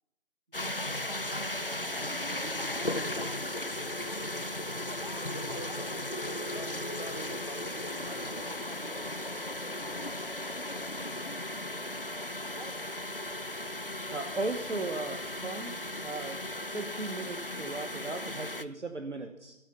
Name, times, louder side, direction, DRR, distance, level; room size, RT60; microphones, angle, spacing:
sound 1, 0.5-18.6, left 1 dB, 45° left, 0.5 m, -36 dB
voice 1, 0.6-4.3 4.6-6.0 12.6-12.8, right 1 dB, 35° right, 9 dB, 1.2 m, -49 dB
voice 2, 5.3-9.1, equal, 30° left, 4 dB, 1.3 m, -45 dB
voice 3, 14.1-15.7 16.0-16.4 16.7-19.5, right 3 dB, 60° right, 7 dB, 1.2 m, -36 dB
15.5 x 9.3 x 7.0 m, 0.96 s
figure-of-eight pair, 170°, 40 cm